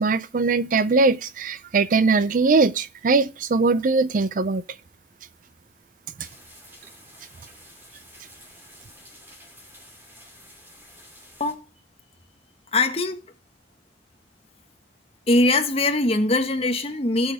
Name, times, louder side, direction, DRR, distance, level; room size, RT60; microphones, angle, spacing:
voice 1, 0.0-4.6 6.2-6.3, right 4 dB, 45° right, 0.4 m, -21 dB
sound 1, 6.2-11.5, equal, 10° right, 2.8 m, -49 dB
voice 2, 12.7-13.2 15.3-17.3, left 2 dB, 35° left, 1.4 m, -21 dB
17.0 x 6.4 x 3.4 m
head